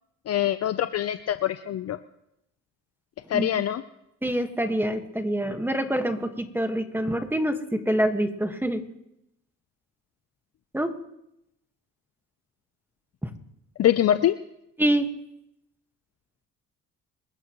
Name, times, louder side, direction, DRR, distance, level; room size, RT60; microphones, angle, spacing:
voice 1, 0.3-2.0 3.3-3.8 13.8-14.3, left 11 dB, 55° left, 11 dB, 0.6 m, -24 dB
voice 2, 4.2-8.8 10.7-10.9 13.2-13.3 14.8-15.1, right 1 dB, 5° right, 6 dB, 1.5 m, -26 dB
27.0 x 15.0 x 3.1 m, 0.83 s
cardioid pair, 90°, 30 cm